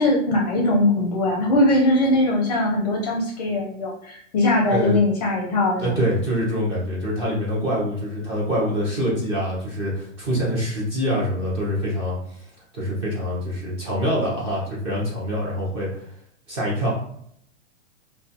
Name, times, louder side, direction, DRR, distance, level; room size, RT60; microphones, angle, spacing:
voice 1, 0.0-6.0, left 2 dB, 35° left, -1 dB, 0.5 m, -21 dB
voice 2, 4.7-5.0 5.8-12.4 12.7-16.0 16.5-17.1, equal, 20° right, -6 dB, 0.5 m, -25 dB
2.3 x 2.2 x 2.7 m, 0.68 s
hypercardioid pair, 160°, 39 cm